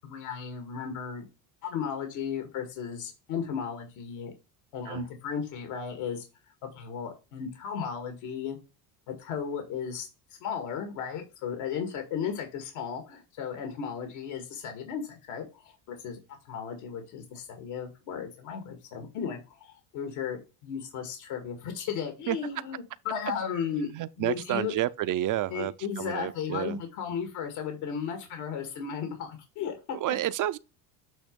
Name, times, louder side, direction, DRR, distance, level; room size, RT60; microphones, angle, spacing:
voice 1, 0.0-1.2 1.6-4.3 4.7-6.2 6.6-8.6 9.2-10.1 10.4-16.2 16.4-23.9 24.2-24.7 25.5-29.8 30.1-30.2, left 7 dB, 75° left, 2.1 m, -35 dB
voice 2, 23.7-26.8 29.9-30.6, right 13 dB, 40° right, 0.5 m, -30 dB
8.7 x 3.0 x 5.2 m
cardioid pair, 105°, 49 cm